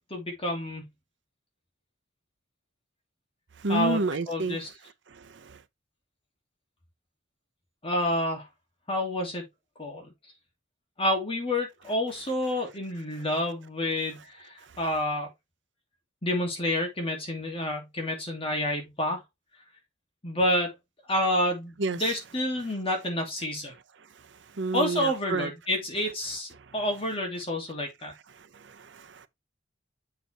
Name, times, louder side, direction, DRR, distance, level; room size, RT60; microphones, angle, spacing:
voice 1, 0.1-0.8 3.7-4.0 4.3-4.7 7.8-8.5 8.9-9.4 9.8-10.1 11.0-15.3 16.2-19.2 20.2-20.7 21.1-23.7 24.7-28.1, left 1 dB, 30° left, 2.6 m, -29 dB
voice 2, 3.6-4.6 5.1-5.6 21.8-22.0 24.5-25.5 26.7-26.8 28.4-29.3, right 3 dB, 70° right, 0.7 m, -30 dB
7.8 x 4.6 x 3.4 m
head